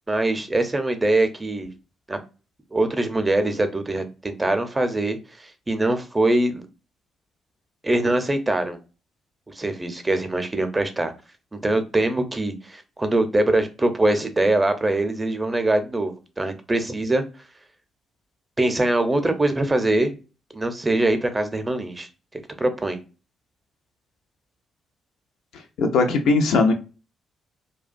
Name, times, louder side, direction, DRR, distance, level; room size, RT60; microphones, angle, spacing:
voice 1, 0.1-1.7 2.1-2.2 2.7-6.7 7.8-8.8 9.5-11.1 11.5-17.2 18.6-20.1 20.5-23.0, right 2 dB, 20° right, 8 dB, 0.6 m, -23 dB
voice 2, 25.8-26.7, left 3 dB, 65° left, 5 dB, 0.4 m, -19 dB
2.4 x 2.2 x 2.5 m, 0.32 s
hypercardioid pair, 40°, 0 cm